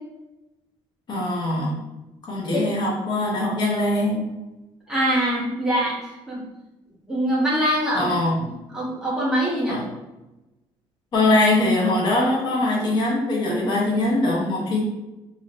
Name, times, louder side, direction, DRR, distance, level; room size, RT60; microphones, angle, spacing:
voice 1, 1.1-1.8 2.2-4.3 7.9-8.3 9.7-9.8 11.1-14.8, left 2 dB, 45° left, -3 dB, 0.9 m, -22 dB
voice 2, 4.9-5.9 6.3-6.4 7.1-8.1 8.4-9.8, equal, 5° right, -6 dB, 0.8 m, -23 dB
3.1 x 2.8 x 2.5 m, 1.0 s
cardioid pair, 180°, 10 cm